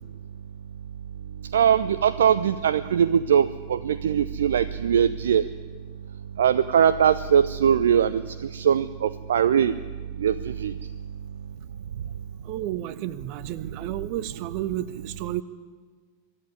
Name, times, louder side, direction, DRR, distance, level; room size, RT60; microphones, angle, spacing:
voice 1, 1.5-5.4 6.4-9.7 10.2-10.7, right 8 dB, 65° right, 14 dB, 0.5 m, -21 dB
voice 2, 12.4-15.4, right 13 dB, 45° right, 15 dB, 0.9 m, -32 dB
24.0 x 11.0 x 9.8 m, 1.5 s
figure-of-eight pair, 90°, 0 cm